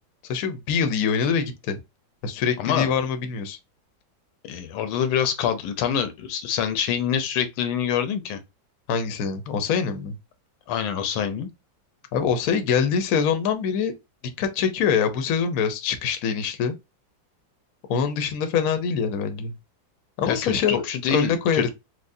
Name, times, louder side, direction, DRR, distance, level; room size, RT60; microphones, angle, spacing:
voice 1, 0.3-1.8 2.2-3.6 8.9-10.2 12.1-13.9 14.4-16.7 17.9-19.5 20.2-20.8 21.1-21.7, left 6 dB, 65° left, 0.8 m, -24 dB
voice 2, 2.6-2.9 4.4-8.4 10.7-11.5 20.3-21.7, left 8 dB, 85° left, 1.4 m, -26 dB
4.6 x 2.1 x 2.6 m
omnidirectional pair, 2.1 m